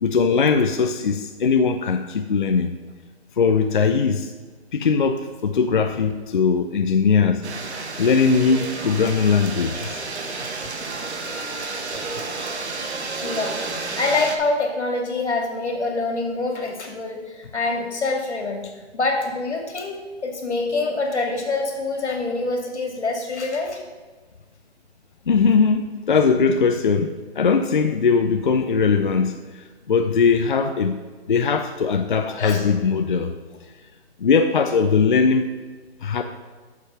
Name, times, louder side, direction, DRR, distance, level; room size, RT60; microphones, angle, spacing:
voice 1, 0.0-2.7 3.4-4.3 4.7-7.4 8.0-10.1 25.3-31.0 31.3-33.3 34.2-35.4 36.0-36.2, left 5 dB, 50° left, 7 dB, 0.5 m, -20 dB
sound 1, 7.4-14.4, right 3 dB, 75° right, 1.5 m, -31 dB
voice 2, 13.2-18.6 18.9-20.0 20.2-23.8 32.2-32.6, left 3 dB, 85° left, 2 dB, 2.5 m, -25 dB
8.3 x 6.8 x 5.7 m, 1.4 s
hypercardioid pair, 170°, 33 cm